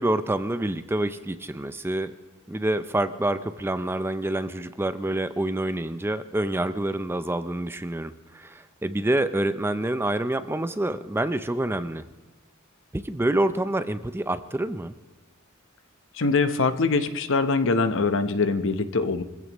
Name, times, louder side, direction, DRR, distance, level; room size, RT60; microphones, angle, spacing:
voice 1, 0.0-2.1 2.5-12.0 12.9-15.0, right 1 dB, 10° right, 11 dB, 0.5 m, -27 dB
voice 2, 16.1-19.2, left 3 dB, 65° left, 10 dB, 0.9 m, -23 dB
24.5 x 15.5 x 3.0 m, 1.2 s
head